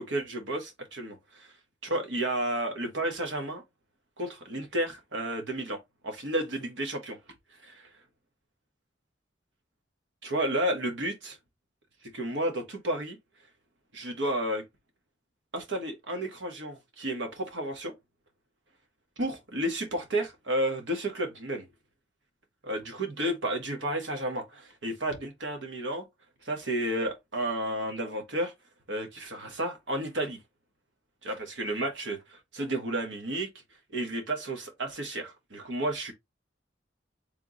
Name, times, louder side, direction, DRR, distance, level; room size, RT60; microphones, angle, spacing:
voice 1, 0.0-1.5 1.8-3.6 4.2-5.8 6.0-7.2 7.6-7.9 10.2-11.4 12.1-13.2 13.9-14.6 15.5-17.9 19.2-21.7 22.6-26.0 26.4-28.5 28.9-30.4 31.2-33.5 33.9-36.1, right 1 dB, 80° right, 1.3 m, -32 dB
3.4 x 3.0 x 3.8 m
head